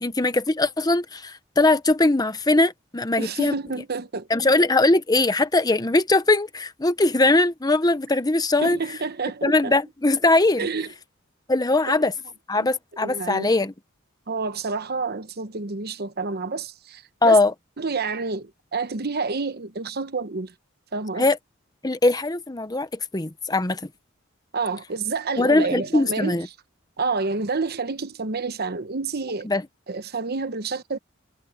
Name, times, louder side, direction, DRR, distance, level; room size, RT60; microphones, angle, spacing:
voice 1, 0.0-3.5 4.3-8.8 9.4-10.7 11.5-12.1 12.5-13.7 17.2-17.5 21.2-21.4 21.8-22.9 23.1-23.8 25.4-26.5 29.4-29.6, left 2 dB, 20° left, 0.9 m, -20 dB
voice 2, 3.2-4.3 8.6-9.7 10.6-10.9 12.5-12.7 13.0-13.5 14.3-17.4 17.8-20.5 20.9-21.3 24.5-26.4 27.0-29.5 29.9-31.0, right 4 dB, 50° right, 1.0 m, -29 dB
head